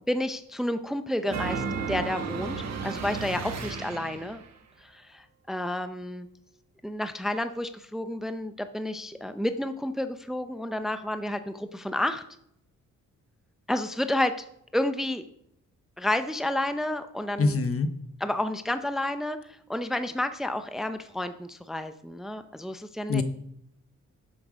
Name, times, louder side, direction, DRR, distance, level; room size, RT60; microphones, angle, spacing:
voice 1, 0.1-4.4 4.8-6.3 6.8-12.2 13.7-14.4 14.7-15.2 16.0-17.6 18.2-23.2, left 1 dB, ahead, 9 dB, 0.7 m, -30 dB
sound 1, 1.3-4.5, right 5 dB, 55° right, 1.5 m, -33 dB
voice 2, 17.4-17.9 23.1-23.2, left 3 dB, 45° left, 9 dB, 1.1 m, -24 dB
11.5 x 7.9 x 5.1 m, 0.76 s
cardioid pair, 80°, 31 cm